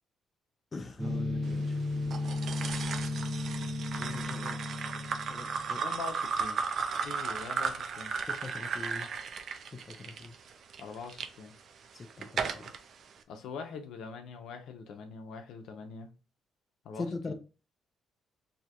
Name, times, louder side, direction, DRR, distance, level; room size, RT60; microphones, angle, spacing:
voice 1, 0.7-1.8 3.9-4.6 5.1-5.8 8.3-9.1 9.6-10.3 11.9-12.7 17.0-17.3, left 3 dB, 25° left, 0.4 m, -42 dB
sound 1, 1.0-5.9, left 2 dB, 20° right, 1.1 m, -34 dB
sound 2, 2.1-11.3 11.8-12.8, right 5 dB, 50° right, 0.4 m, -35 dB
voice 2, 5.8-6.6 6.9-8.1 10.8-11.5 13.3-16.1 16.8-17.3, left 5 dB, 75° left, 0.6 m, -43 dB
2.8 x 2.4 x 4.2 m
cardioid pair, 140°, 0 cm